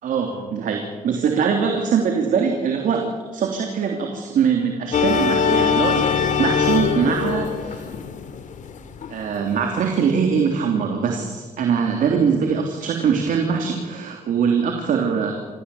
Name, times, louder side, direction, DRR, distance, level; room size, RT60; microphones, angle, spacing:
voice 1, 0.0-3.1 3.3-7.9 9.1-15.3, right 6 dB, 75° right, 3 dB, 3.2 m, -22 dB
sound 1, 4.9-9.3, left 6 dB, 65° left, 2.5 m, -22 dB
27.5 x 16.0 x 8.5 m, 1.4 s
cardioid pair, 80°, 14 cm